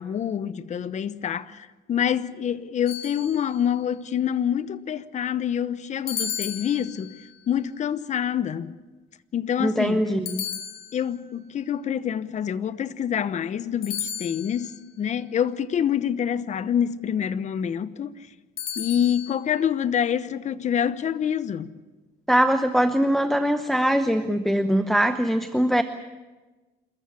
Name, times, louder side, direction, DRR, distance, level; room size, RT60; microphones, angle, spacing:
voice 1, 0.0-8.7 9.3-10.1 10.9-18.3 18.8-21.7, left 9 dB, 45° left, 0.9 m, -26 dB
sound 1, 2.9-3.8 6.1-7.3 10.3-11.3 13.8-14.8 18.6-19.4, left 9 dB, 65° left, 3.3 m, -34 dB
voice 2, 9.6-10.4 22.3-25.8, equal, ahead, 0.9 m, -22 dB
27.5 x 14.5 x 8.7 m
cardioid pair, 110°, 17 cm